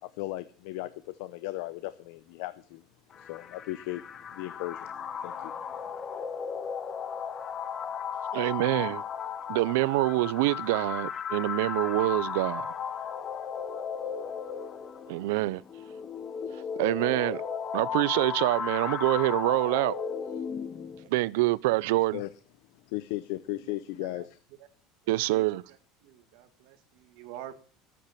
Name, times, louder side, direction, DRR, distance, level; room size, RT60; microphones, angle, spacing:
voice 1, 0.0-2.8 3.2-4.9 5.2-5.5 22.1-22.3 22.9-24.4, left 17 dB, 60° left, 0.7 m, -36 dB
sound 1, 3.1-21.1, left 7 dB, 25° left, 0.9 m, -35 dB
voice 2, 8.3-9.0 9.5-12.7 15.1-15.6 16.8-17.4 17.7-19.9 21.1-22.2 25.1-25.6, right 20 dB, 75° right, 0.5 m, -26 dB
voice 3, 25.3-25.8 26.0-27.5, right 12 dB, 60° right, 1.7 m, -46 dB
13.5 x 8.7 x 7.0 m
cardioid pair, 180°, 0 cm